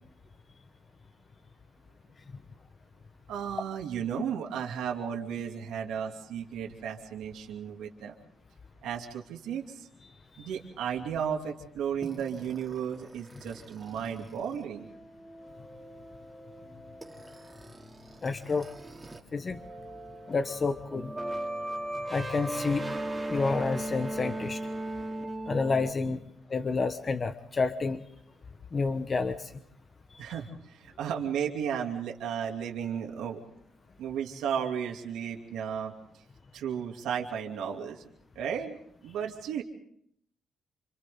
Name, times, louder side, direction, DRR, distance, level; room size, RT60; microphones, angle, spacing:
voice 1, 3.3-8.1 8.8-9.9 10.4-14.9 26.1-26.2 30.2-33.4 34.0-35.9 36.5-38.1 38.3-39.6, right 8 dB, 85° right, 1 dB, 2.8 m, -34 dB
sound 1, 12.0-19.2 19.5-25.9, right 1 dB, 15° right, 2.8 m, -38 dB
voice 2, 18.2-18.7 19.3-19.6 20.3-21.1 22.1-22.9 23.3-24.7 25.5-26.2 26.5-28.0 28.7-29.5, left 4 dB, 35° left, 8 dB, 1.1 m, -29 dB
28.0 x 26.5 x 3.9 m, 0.67 s
cardioid pair, 90°, 0 cm